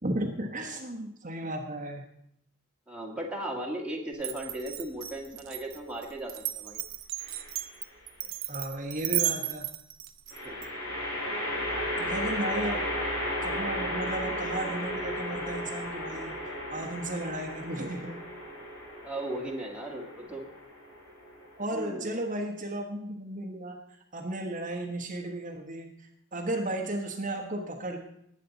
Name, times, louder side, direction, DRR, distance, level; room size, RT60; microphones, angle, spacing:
voice 1, 0.0-2.0 8.2-9.7 12.0-12.9 13.4-16.3 16.7-18.2 21.6-28.0, right 1 dB, 35° right, 1 dB, 1.2 m, -34 dB
voice 2, 2.9-6.8 10.4-10.6 12.4-12.8 19.0-20.4 21.7-22.2, right 1 dB, 5° right, -2 dB, 1.9 m, -37 dB
Glass, 4.2-10.7, right 13 dB, 70° right, 0.9 m, -34 dB
sound 1, 7.2-7.8 10.3-21.7, left 1 dB, 70° left, 5.2 m, -34 dB
19.5 x 8.6 x 4.0 m, 0.75 s
head